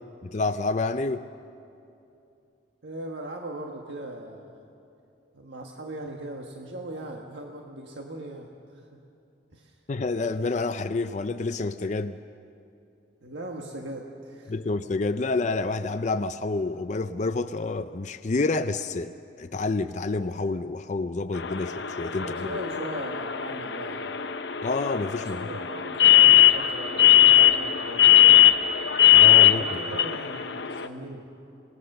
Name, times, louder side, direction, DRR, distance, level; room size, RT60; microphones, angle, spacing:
voice 1, 0.2-1.3 9.9-12.2 14.5-19.1 19.4-22.5 24.6-25.5 29.1-29.7, left 3 dB, 40° left, 11 dB, 0.4 m, -28 dB
voice 2, 2.8-4.7 5.3-9.0 9.5-9.8 13.2-14.8 22.2-24.2 25.2-28.2 29.5-31.3, right 1 dB, 80° right, 1 dB, 1.5 m, -39 dB
sound 1, 21.3-30.9, left 12 dB, 70° left, 0.8 m, -19 dB
27.0 x 19.5 x 6.6 m, 2.7 s
head